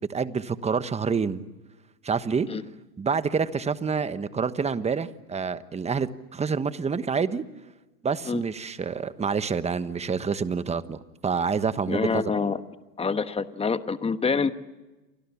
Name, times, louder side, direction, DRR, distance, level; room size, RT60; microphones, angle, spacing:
voice 1, 0.1-1.4 2.0-2.5 3.0-7.4 8.0-12.2, right 5 dB, 15° right, 13 dB, 1.2 m, -27 dB
voice 2, 11.9-12.6 13.0-14.5, left 5 dB, 10° left, 11 dB, 1.3 m, -26 dB
29.0 x 25.0 x 7.3 m, 1.1 s
hypercardioid pair, 120°, 48 cm